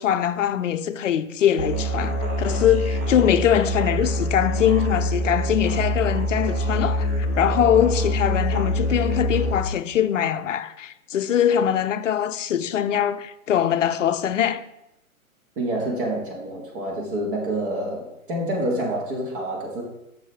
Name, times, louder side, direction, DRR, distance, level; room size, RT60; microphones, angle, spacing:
voice 1, 0.0-7.1 7.4-14.6, left 10 dB, 60° left, 0.6 m, -22 dB
Musical instrument, 1.6-9.5, equal, 10° right, 0.4 m, -25 dB
voice 2, 15.6-19.8, right 1 dB, 35° right, 1.8 m, -27 dB
6.4 x 6.3 x 3.4 m
figure-of-eight pair, 130°, 43 cm